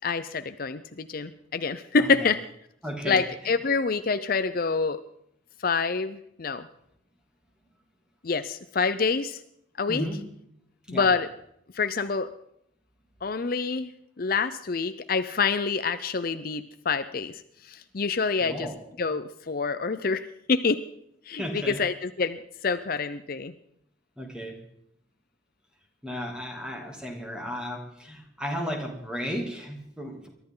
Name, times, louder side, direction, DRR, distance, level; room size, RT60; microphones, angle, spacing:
voice 1, 0.0-2.4 3.1-5.0 5.6-6.7 8.2-9.4 9.8-10.1 10.9-11.3 11.7-12.3 13.2-13.9 14.2-17.3 17.6-18.7 19.0-20.8 21.3-23.5, left 4 dB, 50° left, 12 dB, 0.6 m, -27 dB
voice 2, 2.8-3.5 9.9-10.2 10.9-11.1 18.4-18.8 21.4-21.9 24.2-24.6 26.0-30.3, equal, 5° right, 1 dB, 2.8 m, -34 dB
22.5 x 13.0 x 3.9 m, 0.74 s
head